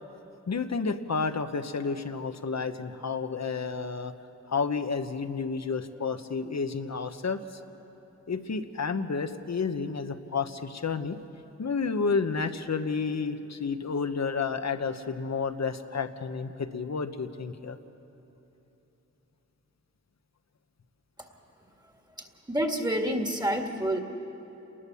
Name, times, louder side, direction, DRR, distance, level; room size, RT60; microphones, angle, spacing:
voice 1, 0.5-4.1 4.5-7.6 8.3-11.2 11.6-17.8, left 5 dB, 65° left, 9 dB, 1.2 m, -31 dB
voice 2, 22.2-24.0, equal, 15° right, 3 dB, 2.0 m, -28 dB
29.5 x 20.0 x 7.0 m, 3.0 s
wide cardioid pair, 95°, 29 cm